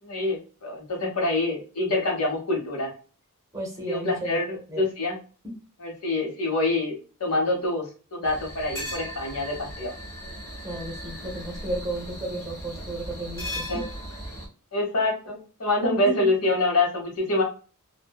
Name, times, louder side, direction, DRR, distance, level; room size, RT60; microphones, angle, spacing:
voice 1, 0.0-2.9 3.9-5.2 5.8-6.9 7.2-9.9 13.7-13.8 14.7-17.4, left 2 dB, 70° left, -1 dB, 1.2 m, -26 dB
voice 2, 3.5-4.4 4.7-4.9 5.4-5.5 10.6-13.8 16.0-16.1, right 1 dB, 15° right, 0 dB, 0.7 m, -33 dB
sound 1, 8.2-14.5, equal, 10° left, 1.1 m, -37 dB
2.5 x 2.2 x 2.3 m, 0.36 s
head